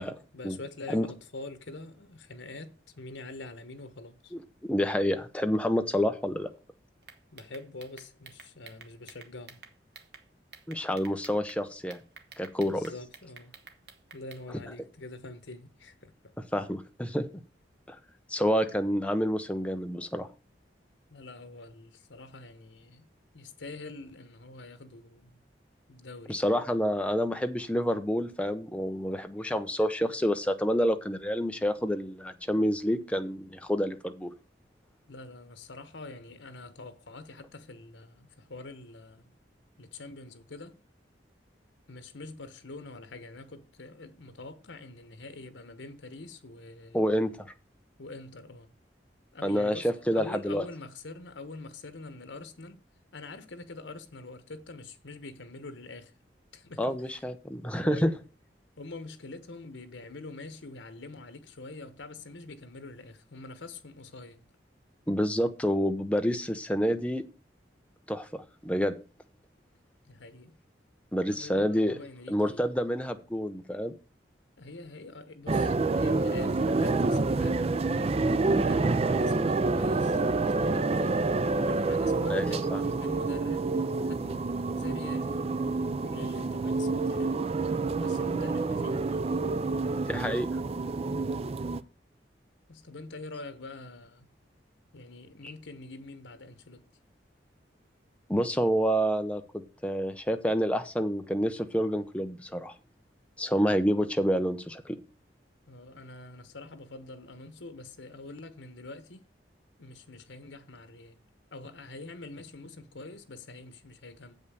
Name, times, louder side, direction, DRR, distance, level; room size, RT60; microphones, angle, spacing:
voice 1, 0.0-4.3 7.3-9.6 12.6-13.5 14.1-16.3 21.1-23.1 23.3-25.4 25.9-26.4 35.1-39.3 39.8-40.8 41.9-47.0 48.0-48.7 49.3-52.8 53.1-56.1 56.5-57.2 57.6-58.3 58.8-64.4 70.0-70.6 71.3-72.7 74.6-81.2 81.6-83.7 84.1-85.5 86.0-87.4 88.0-89.2 92.7-94.3 94.9-96.9 105.7-109.3 109.8-111.2 111.5-114.4, left 2 dB, 85° left, 1.1 m, -45 dB
voice 2, 4.3-6.5 10.7-12.0 12.4-12.9 16.5-17.3 17.9-18.0 18.3-20.3 26.3-34.3 46.9-47.5 49.4-50.6 56.8-58.1 65.1-67.2 68.1-68.9 71.1-72.0 72.3-73.9 82.3-82.9 90.1-90.5 95.4-95.5 98.3-102.7 103.4-105.0, equal, 5° left, 0.7 m, -28 dB
sound 1, 7.0-10.2 10.5-11.6 11.9-14.4, right 5 dB, 60° right, 1.3 m, -50 dB
sound 2, 75.5-91.8, right 3 dB, 35° right, 0.4 m, -28 dB
8.0 x 5.4 x 6.8 m
head